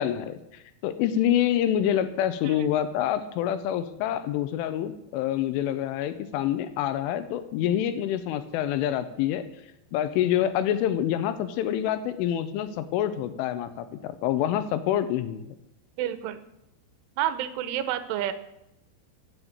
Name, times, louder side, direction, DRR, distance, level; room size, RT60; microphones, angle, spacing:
voice 1, 0.0-9.5 9.9-15.4, left 11 dB, 85° left, 11 dB, 3.3 m, -27 dB
voice 2, 16.0-16.4 17.2-18.3, right 12 dB, 85° right, 10 dB, 3.3 m, -29 dB
15.0 x 7.5 x 8.1 m, 0.86 s
omnidirectional pair, 5.5 m